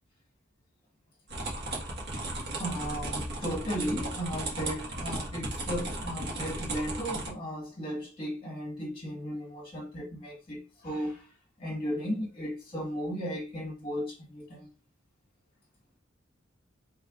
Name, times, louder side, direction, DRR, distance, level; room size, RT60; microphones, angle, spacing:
sound 1, 1.3-7.3, right 2 dB, 55° right, 1.5 m, -35 dB
voice 1, 2.3-14.7, equal, 25° left, 1.6 m, -35 dB
5.6 x 3.4 x 2.5 m
head